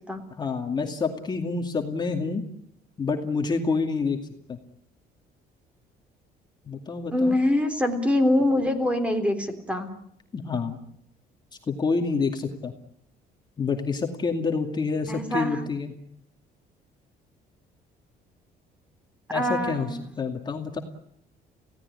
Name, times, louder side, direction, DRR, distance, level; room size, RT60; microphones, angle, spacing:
voice 1, 0.4-2.4 3.0-4.2 4.5-4.6 6.7-7.4 10.3-10.8 11.7-12.7 13.6-15.9 19.3-20.8, left 4 dB, 25° left, 3 dB, 2.4 m, -28 dB
voice 2, 7.1-9.9 15.1-15.6 19.3-20.0, left 1 dB, 5° right, 8 dB, 3.5 m, -24 dB
29.5 x 17.5 x 9.9 m, 0.74 s
cardioid pair, 145°, 17 cm